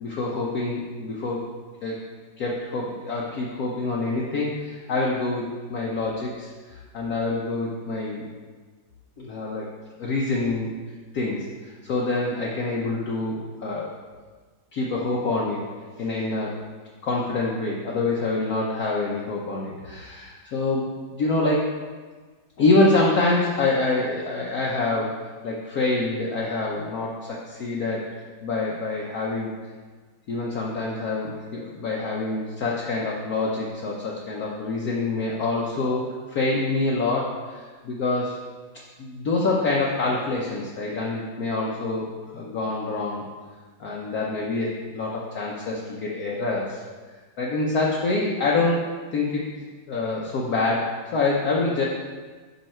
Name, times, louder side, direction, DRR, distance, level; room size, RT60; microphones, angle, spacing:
voice 1, 0.0-1.4 1.8-2.0 2.4-8.3 9.2-9.7 10.0-10.7 11.1-13.9 14.7-15.7 16.0-16.5 17.0-21.7 22.6-28.1 28.4-29.5 30.3-38.4 39.0-42.1 42.3-43.2 43.8-46.8 47.4-48.9 49.1-49.5 49.9-51.8, left 3 dB, 60° left, -3 dB, 1.0 m, -26 dB
5.7 x 5.4 x 4.3 m, 1.4 s
omnidirectional pair, 2.1 m